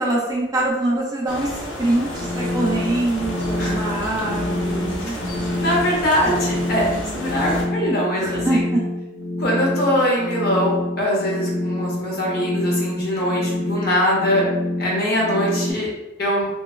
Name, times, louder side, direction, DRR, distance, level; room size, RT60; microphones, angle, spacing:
voice 1, 0.0-5.7 6.2-6.3 8.2-8.8, right 1 dB, 20° right, -4 dB, 0.5 m, -24 dB
sound 1, 1.3-7.7, left 1 dB, 90° left, 0.6 m, -31 dB
sound 2, 2.1-15.7, left 1 dB, 25° left, 1.0 m, -27 dB
voice 2, 5.6-8.6 9.4-14.5 14.8-15.9 16.2-16.5, equal, 55° left, -3 dB, 0.8 m, -22 dB
2.9 x 2.2 x 2.3 m, 0.99 s
head